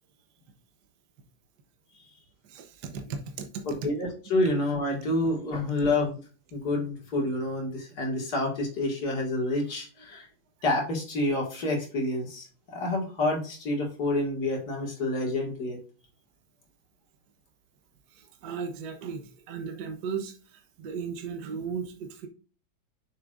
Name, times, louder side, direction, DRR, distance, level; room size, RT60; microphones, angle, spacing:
voice 1, 2.5-3.6 18.1-22.3, right 6 dB, 60° right, 5 dB, 1.4 m, -36 dB
voice 2, 3.7-6.2 6.5-10.3 10.6-15.8, left 2 dB, 50° left, 0 dB, 2.3 m, -28 dB
6.7 x 6.2 x 2.5 m, 0.37 s
omnidirectional pair, 2.3 m